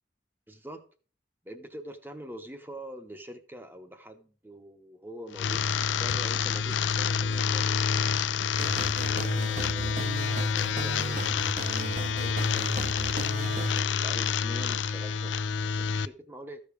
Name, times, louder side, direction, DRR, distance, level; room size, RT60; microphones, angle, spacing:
voice 1, 0.5-0.8 1.4-7.9 9.1-10.4 10.7-11.4 11.8-12.8 14.0-16.6, equal, 10° right, 7 dB, 0.8 m, -44 dB
sound 1, 5.3-16.1, left 6 dB, 80° left, 0.4 m, -28 dB
sound 2, 5.5-7.6 8.0-9.6 9.9-10.1 10.4-10.5 10.7-11.0, left 4 dB, 60° left, 1.5 m, -50 dB
sound 3, 8.6-13.8, right 2 dB, 40° right, 0.7 m, -36 dB
14.0 x 5.1 x 5.0 m, 0.40 s
head